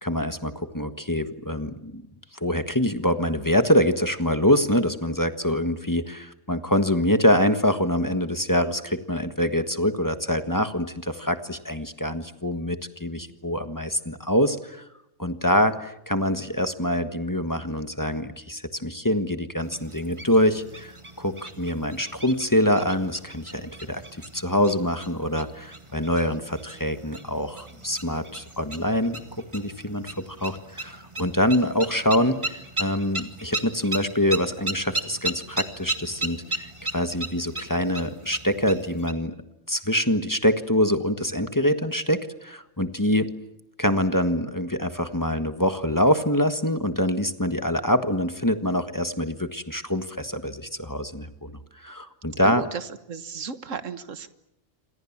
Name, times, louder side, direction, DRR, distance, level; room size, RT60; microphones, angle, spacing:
voice 1, 0.0-2.0 2.4-14.8 15.2-20.9 21.2-24.0 24.3-29.2 29.5-39.3 39.7-43.3 43.8-52.6, equal, 15° left, 9 dB, 1.5 m, -25 dB
sound 1, 19.6-39.1, right 2 dB, 20° right, 2.1 m, -36 dB
voice 2, 52.4-54.3, right 6 dB, 75° right, 12 dB, 1.8 m, -34 dB
28.5 x 26.5 x 7.4 m, 0.85 s
omnidirectional pair, 1.3 m